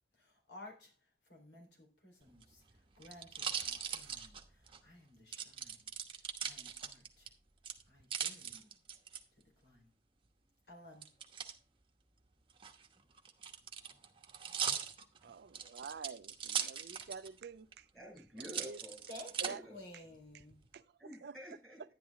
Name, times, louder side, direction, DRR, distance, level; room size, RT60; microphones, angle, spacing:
voice 1, 0.2-0.9 1.3-2.6 3.0-5.9 6.4-7.3 7.9-8.7 9.4-9.9 10.7-11.1 19.1-20.6, left 1 dB, 70° left, 3.9 m, -55 dB
sound 1, 2.3-4.8 5.3-7.3 7.6-9.2 11.0-11.5 12.5-17.4 17.7-17.8 18.4-19.5 20.1-20.7, right 7 dB, 30° right, 1.0 m, -40 dB
voice 2, 15.2-17.9 18.5-18.8 19.4-19.6 19.9-20.0 20.3-20.4 20.7-20.8 21.2-21.3, right 5 dB, 55° right, 0.4 m, -48 dB
voice 3, 17.9-19.1 19.4-19.8 21.0-21.8, equal, 5° left, 5.6 m, -50 dB
10.5 x 10.5 x 3.5 m
head